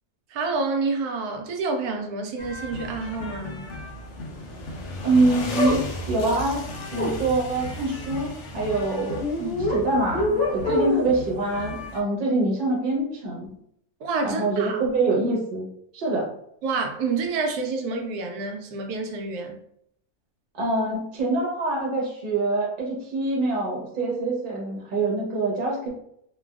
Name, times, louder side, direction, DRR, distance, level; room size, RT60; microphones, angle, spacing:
voice 1, 0.3-3.7 9.4-9.6 14.0-14.8 16.6-19.6, right 4 dB, 85° right, 3 dB, 1.1 m, -28 dB
sound 1, 2.4-12.0, left 1 dB, 65° left, 0.7 m, -36 dB
voice 2, 5.0-6.6 6.9-9.2 9.7-13.5 14.2-15.7 15.9-16.3 20.5-25.9, right 2 dB, 40° right, -3 dB, 0.8 m, -25 dB
sound 2, 5.6-5.8 7.0-7.1 9.2-9.8 10.1-11.1, left 2 dB, 30° left, 0.8 m, -24 dB
3.2 x 2.2 x 2.2 m, 0.73 s
omnidirectional pair, 1.6 m